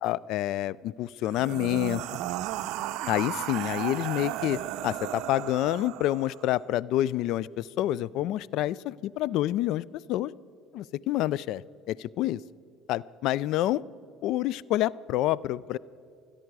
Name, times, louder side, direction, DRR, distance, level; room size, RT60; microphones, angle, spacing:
voice 1, 0.0-2.0 3.1-10.3 10.7-11.6 11.9-12.4 12.9-13.8 14.2-15.8, left 14 dB, 70° left, 22 dB, 0.3 m, -28 dB
sound 1, 1.2-6.5, right 13 dB, 70° right, 0.5 m, -34 dB
28.5 x 10.0 x 4.8 m, 2.6 s
supercardioid pair, 85°, 0 cm